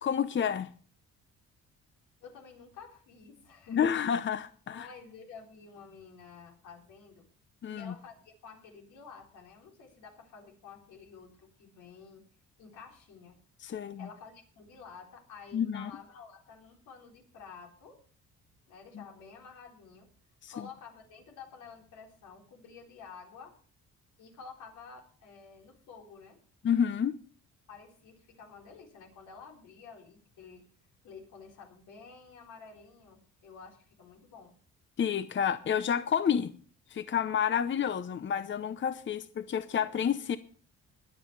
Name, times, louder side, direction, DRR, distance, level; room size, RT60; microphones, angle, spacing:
voice 1, 0.0-0.7 3.7-4.8 7.6-7.9 13.6-14.1 15.5-15.9 18.9-19.0 20.4-20.7 26.6-27.2 35.0-36.5 36.9-40.4, left 8 dB, 40° left, 0.8 m, -29 dB
voice 2, 2.2-4.0 4.7-7.3 7.7-12.3 12.6-13.4 13.7-18.1 18.7-20.1 20.5-23.6 24.2-26.4 27.7-30.7 31.0-34.6, left 5 dB, 90° left, 4.1 m, -51 dB
21.5 x 7.4 x 4.7 m
cardioid pair, 90°, 30 cm